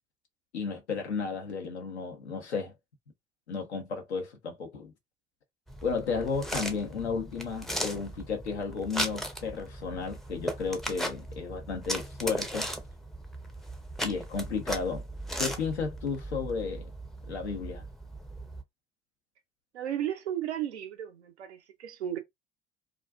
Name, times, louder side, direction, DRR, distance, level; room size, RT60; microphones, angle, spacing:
voice 1, 0.5-2.7 3.5-4.9 5.8-12.7 14.0-15.1 15.4-16.9 17.3-17.8, left 5 dB, 85° left, 0.8 m, -33 dB
sound 1, 5.7-18.6, right 1 dB, ahead, 0.5 m, -37 dB
voice 2, 19.7-22.2, right 11 dB, 85° right, 0.6 m, -34 dB
2.4 x 2.3 x 2.3 m
figure-of-eight pair, 60°, 33 cm